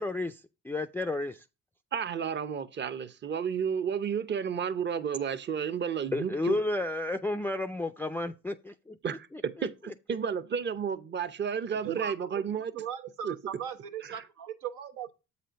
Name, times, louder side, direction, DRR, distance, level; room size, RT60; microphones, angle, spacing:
voice 1, 0.0-1.4 6.1-9.0 9.3-9.4, left 2 dB, 5° left, 0.3 m, -32 dB
voice 2, 1.9-6.6 9.0-12.7 13.2-13.4 14.1-14.2, right 7 dB, 35° right, 0.7 m, -32 dB
voice 3, 11.8-12.3 12.7-15.1, right 8 dB, 90° right, 1.0 m, -38 dB
7.6 x 4.2 x 5.2 m
cardioid pair, 90°, 30 cm